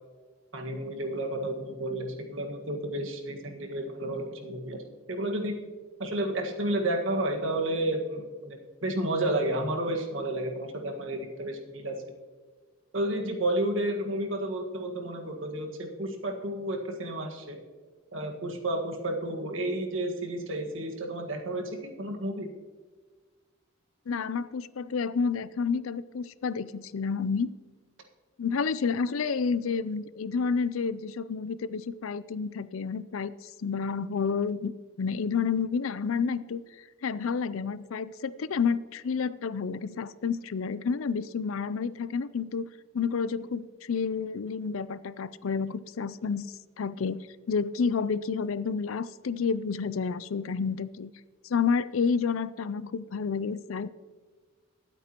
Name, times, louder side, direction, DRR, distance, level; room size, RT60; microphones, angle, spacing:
voice 1, 0.5-4.8 5.1-5.6 6.0-12.0 12.9-17.6 18.1-22.5, right 1 dB, 70° right, 3 dB, 1.7 m, -31 dB
voice 2, 24.1-27.5 28.4-34.7 35.0-36.6 37.0-42.7 42.9-46.5 46.8-51.1 51.5-53.9, left 5 dB, 85° left, 16 dB, 0.5 m, -30 dB
22.0 x 8.4 x 3.0 m, 1.4 s
head